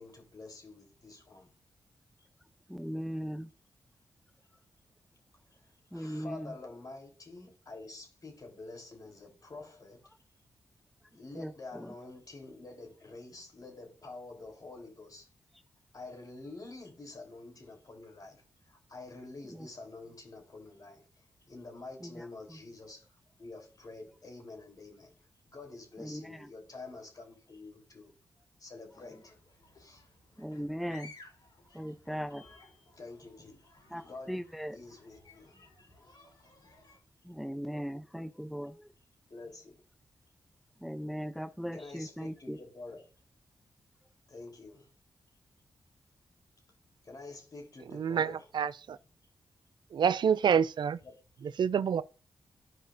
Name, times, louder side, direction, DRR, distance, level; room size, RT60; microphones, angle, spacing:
voice 1, 0.0-1.5 5.9-10.0 11.1-15.3 15.9-25.1 25.4-28.1 28.6-29.3 29.8-30.0 33.0-34.4 34.7-35.9 39.2-39.8 41.7-43.1 44.3-44.9 47.0-48.5 51.0-51.3, left 3 dB, 50° left, 3.6 m, -48 dB
voice 2, 2.7-3.5 5.9-6.5 11.4-11.9 19.5-19.7 22.0-22.6 26.0-26.5 30.4-31.1 31.7-32.7 33.9-34.8 37.2-38.9 40.8-42.6, equal, ahead, 0.6 m, -39 dB
sound 1, 28.9-37.0, left 3 dB, 65° left, 4.6 m, -58 dB
voice 3, 47.9-49.0 49.9-51.0 51.4-52.0, right 7 dB, 70° right, 0.4 m, -28 dB
14.0 x 5.0 x 2.6 m
supercardioid pair, 45°, 8 cm